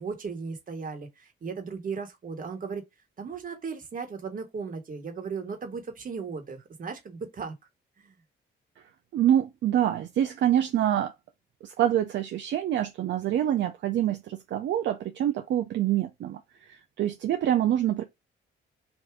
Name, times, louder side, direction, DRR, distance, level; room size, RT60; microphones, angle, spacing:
voice 1, 0.0-2.8 3.2-7.5 8.0-8.2, right 5 dB, 45° right, 1.5 m, -36 dB
voice 2, 9.1-11.1 11.6-16.4 17.0-18.0, right 11 dB, 65° right, 0.6 m, -26 dB
3.5 x 2.6 x 4.6 m
cardioid pair, 90°, 20 cm